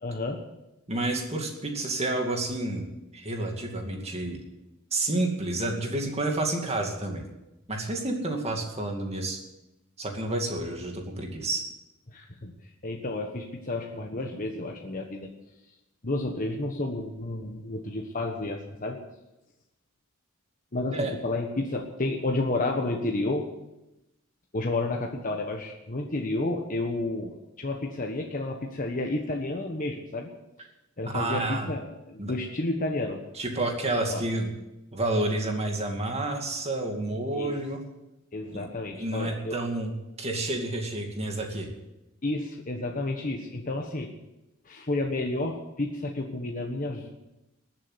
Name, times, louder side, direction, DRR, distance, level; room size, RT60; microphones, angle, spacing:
voice 1, 0.0-0.5 12.1-12.5 12.8-15.3 16.0-19.0 20.7-23.5 24.5-30.3 31.0-33.2 34.1-34.2 37.3-37.6 38.3-39.5 42.2-44.1 44.6-47.1, left 2 dB, 40° left, 1 dB, 1.4 m, -31 dB
voice 2, 0.9-4.4 4.9-7.2 7.7-9.4 10.0-11.6 20.9-21.1 31.1-31.7 32.2-32.3 33.4-34.5 34.9-37.8 38.5-38.6 39.0-39.9 40.2-41.7, right 2 dB, 30° right, 2 dB, 2.3 m, -29 dB
20.0 x 7.5 x 8.1 m, 0.95 s
head